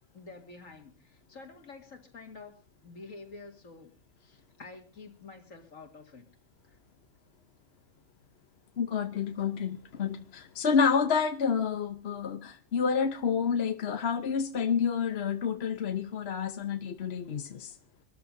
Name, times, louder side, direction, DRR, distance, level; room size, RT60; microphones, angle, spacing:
voice 1, 0.1-3.9 4.2-6.3 6.7-6.8, left 3 dB, 70° left, 4 dB, 2.6 m, -49 dB
voice 2, 8.8-17.7, left 6 dB, 55° left, 7 dB, 1.0 m, -29 dB
25.5 x 13.5 x 2.7 m, 0.31 s
omnidirectional pair, 1.4 m